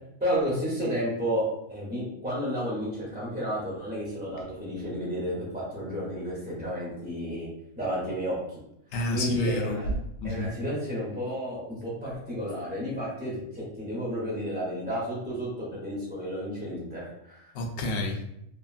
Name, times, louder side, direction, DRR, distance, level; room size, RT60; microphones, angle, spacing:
voice 1, 0.2-1.4 1.7-7.5 7.8-8.4 9.1-9.9 10.2-17.5, equal, 10° right, -8 dB, 0.6 m, -32 dB
voice 2, 8.9-10.5 17.5-18.2, left 1 dB, 70° left, 2 dB, 0.8 m, -29 dB
2.8 x 2.5 x 2.4 m, 0.79 s
omnidirectional pair, 1.3 m